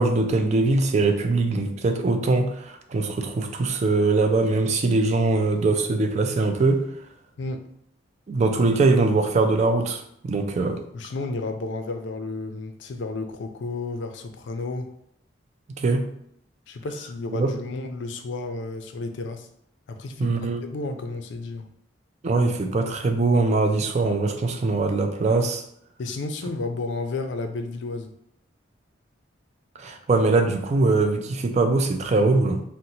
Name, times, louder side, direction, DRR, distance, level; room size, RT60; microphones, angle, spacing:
voice 1, 0.0-6.8 8.3-10.8 15.8-16.0 17.3-17.5 20.2-20.7 22.2-25.6 29.8-32.6, right 3 dB, 35° right, 6 dB, 0.3 m, -22 dB
voice 2, 10.9-14.9 16.7-19.5 19.9-21.7 26.0-28.1, left 3 dB, 70° left, 6 dB, 0.4 m, -32 dB
2.7 x 2.0 x 4.0 m, 0.71 s
head